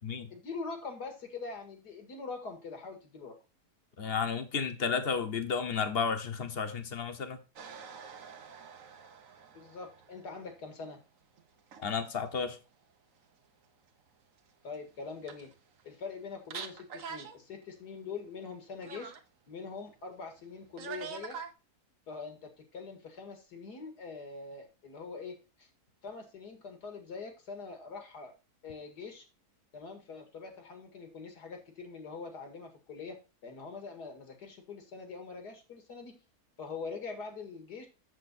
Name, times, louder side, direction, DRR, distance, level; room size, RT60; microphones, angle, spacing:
voice 1, 0.3-3.4 9.5-11.0 14.6-15.5 15.8-19.1 19.5-21.4 22.1-25.7 26.0-28.3 28.6-29.2 29.7-36.2 36.6-37.9, left 4 dB, 80° left, 2.5 m, -43 dB
voice 2, 4.0-7.4 11.8-12.6, left 6 dB, 40° left, 1.1 m, -32 dB
sound 1, 7.6-10.8 11.4-11.9 12.2-12.3 14.7-14.8 15.0-15.8 16.1-16.2 16.5-17.4 17.6-17.7 18.8-19.2 20.8-21.5, right 6 dB, 60° right, 1.2 m, -45 dB
7.7 x 7.1 x 4.2 m
omnidirectional pair, 1.7 m